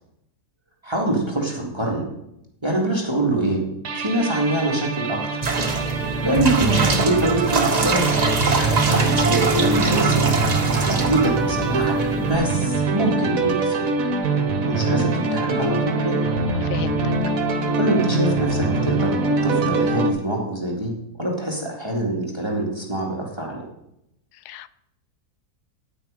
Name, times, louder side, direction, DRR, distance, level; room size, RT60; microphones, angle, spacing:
voice 1, 0.8-2.1 2.6-3.6 3.9-5.4 6.2-8.2 8.9-10.2 10.9-11.9 12.3-13.9 14.6-16.2 17.8-19.1 19.4-23.6, right 1 dB, 15° right, -1 dB, 1.9 m, -24 dB
sound 1, 3.8-20.1, right 3 dB, 65° right, 1.4 m, -23 dB
sound 2, 5.4-12.4, right 3 dB, 30° right, 0.9 m, -23 dB
voice 2, 8.4-9.0 16.6-17.1 24.4-24.8, left 12 dB, 85° left, 15 dB, 1.1 m, -34 dB
9.4 x 9.1 x 4.9 m, 0.81 s
omnidirectional pair, 1.6 m